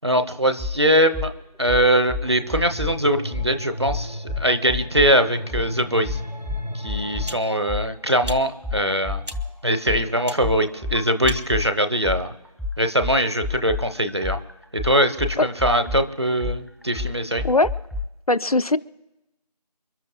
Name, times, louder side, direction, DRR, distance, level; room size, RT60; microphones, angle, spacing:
voice 1, 0.0-1.3 1.6-6.2 6.7-9.2 9.6-12.3 12.8-14.4 14.7-17.4, equal, 40° right, 8 dB, 0.9 m, -22 dB
sound 1, 0.6-0.8 1.1-1.3 1.7-3.0 3.3-3.5 3.9-5.1 5.5-5.7 6.0-7.3 7.7-11.7 12.0-18.0, left 3 dB, ahead, 0.4 m, -29 dB
sound 2, 2.2-7.4, equal, 85° left, 4.2 m, -35 dB
sound 3, 6.3-6.5 7.2-7.5 8.2-8.4 9.2-9.4 10.2-10.4 11.2-11.5, right 1 dB, 70° right, 1.4 m, -36 dB
voice 2, 18.3-18.8, left 2 dB, 60° left, 15 dB, 0.7 m, -19 dB
29.0 x 11.5 x 2.3 m, 0.97 s
figure-of-eight pair, 175°, 21 cm